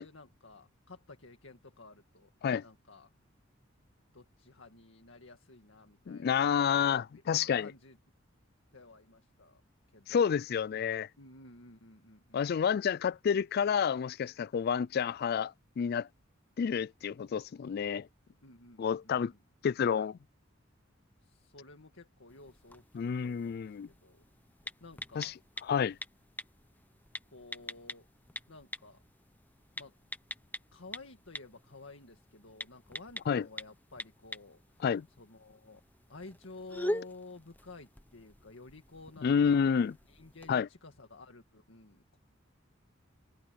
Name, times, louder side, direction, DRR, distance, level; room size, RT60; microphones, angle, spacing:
voice 1, 0.0-2.3 2.6-3.1 4.1-6.5 7.1-8.0 8.7-9.6 9.9-10.4 11.2-12.4 18.4-19.4 21.2-24.2 24.8-25.4 27.3-28.1 28.5-29.0 29.8-29.9 30.7-34.9 35.2-35.8 36.1-39.6 40.1-42.2, left 3 dB, 75° left, 2.0 m, -53 dB
voice 2, 6.1-7.7 10.1-11.1 12.3-16.1 16.6-18.1 18.8-19.3 19.6-20.2 22.9-23.9 25.2-25.3 25.7-26.0 33.3-33.5 34.8-35.1 39.2-39.9 40.5-40.7, left 7 dB, 50° left, 0.3 m, -29 dB
sound 1, 22.3-40.6, left 1 dB, 10° left, 1.0 m, -45 dB
head